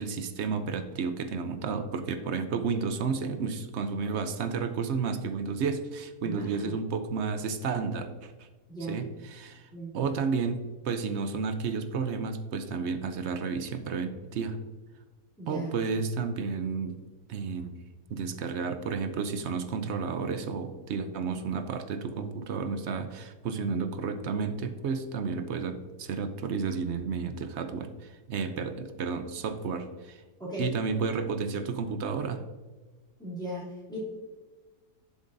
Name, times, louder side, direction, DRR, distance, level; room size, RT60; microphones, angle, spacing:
voice 1, 0.0-8.5 8.9-9.7 9.9-14.6 15.5-16.9 17.3-17.8 18.1-30.2 30.6-32.4, right 5 dB, 60° right, 9 dB, 0.7 m, -32 dB
voice 2, 6.2-6.8 8.7-9.0 9.7-9.9 15.4-15.7 30.4-30.7 33.2-34.0, right 1 dB, 5° left, -8 dB, 2.8 m, -37 dB
11.5 x 7.2 x 2.6 m, 1.3 s
omnidirectional pair, 1.7 m